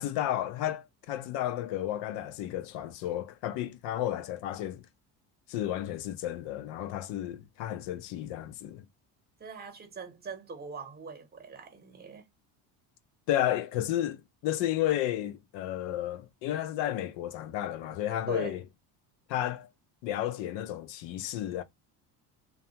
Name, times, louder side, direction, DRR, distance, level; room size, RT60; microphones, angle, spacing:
voice 1, 0.0-4.8 5.5-8.9 13.3-18.6 19.3-19.7 20.0-21.6, left 12 dB, 70° left, 0.6 m, -32 dB
voice 2, 9.4-12.3 18.3-18.6, right 5 dB, 20° right, 0.9 m, -41 dB
2.7 x 2.3 x 2.7 m
cardioid pair, 110°, 44 cm